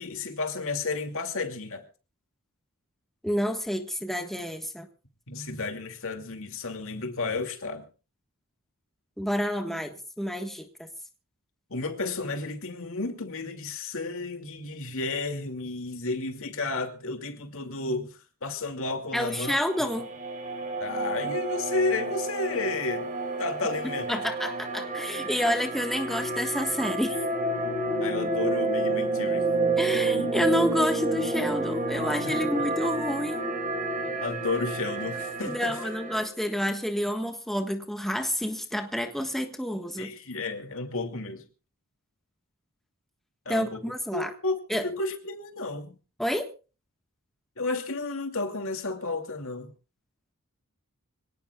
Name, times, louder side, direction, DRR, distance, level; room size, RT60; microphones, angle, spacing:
voice 1, 0.0-1.8 5.3-7.9 11.7-19.6 20.8-23.1 23.4-24.2 28.0-29.5 32.2-32.6 34.2-35.8 40.0-41.4 43.5-43.8 44.1-46.0 47.6-49.7, left 3 dB, 65° left, 2.6 m, -32 dB
voice 2, 3.2-4.9 9.2-10.9 19.1-20.1 24.1-27.2 29.8-33.4 35.4-40.1 43.5-44.3 44.7-44.9 46.2-46.5, equal, ahead, 1.5 m, -29 dB
sound 1, 19.3-36.2, right 2 dB, 35° right, 5.2 m, -30 dB
26.0 x 18.5 x 2.4 m
head